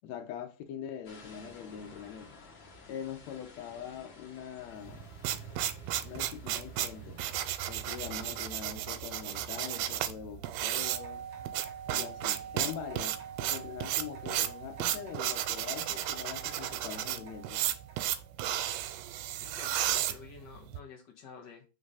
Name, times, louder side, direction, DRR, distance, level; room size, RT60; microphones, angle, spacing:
voice 1, 0.0-2.4 2.9-5.1 6.0-7.2 7.7-11.2 11.9-17.7, left 9 dB, 70° left, 1.8 m, -43 dB
sound 1, 1.0-7.5, left 4 dB, 50° left, 1.4 m, -54 dB
sound 2, 4.9-20.8, right 12 dB, 90° right, 2.4 m, -33 dB
sound 3, 10.8-18.3, right 7 dB, 60° right, 1.5 m, -46 dB
voice 2, 19.4-21.6, left 6 dB, 85° left, 0.9 m, -50 dB
4.8 x 3.9 x 5.4 m
omnidirectional pair, 4.0 m